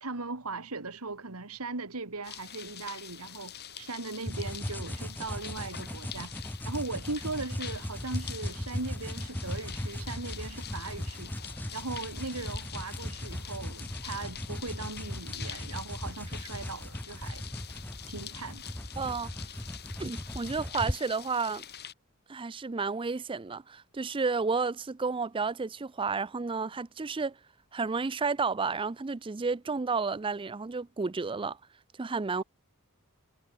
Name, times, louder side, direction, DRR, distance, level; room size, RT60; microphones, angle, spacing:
voice 1, 0.0-6.3 6.6-11.3 11.7-17.4 18.1-18.7 32.4-32.5, right 3 dB, 80° right, 2.2 m, -39 dB
sound 1, 2.2-21.9, left 10 dB, 45° left, 3.9 m, -45 dB
sound 2, 4.3-21.0, equal, 10° left, 1.1 m, -38 dB
voice 2, 19.0-19.3 20.0-21.6 22.3-27.4 27.7-31.6 32.0-32.4, right 4 dB, 25° right, 0.5 m, -31 dB
head